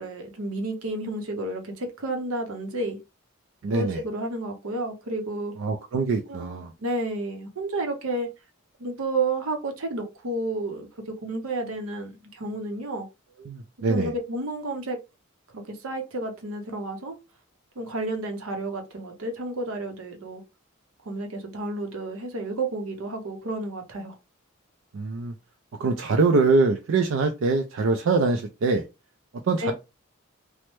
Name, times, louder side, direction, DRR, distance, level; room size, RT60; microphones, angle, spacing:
voice 1, 0.0-3.0 3.7-5.5 6.3-8.3 8.8-13.1 13.9-15.0 15.5-17.2 17.8-20.4 21.0-24.2 29.6-29.7, right 2 dB, 85° right, 0.7 m, -31 dB
voice 2, 3.6-4.0 5.6-6.7 13.5-14.1 24.9-25.3 25.8-28.8 29.5-29.7, right 3 dB, 70° right, 0.4 m, -23 dB
3.1 x 2.1 x 3.0 m
head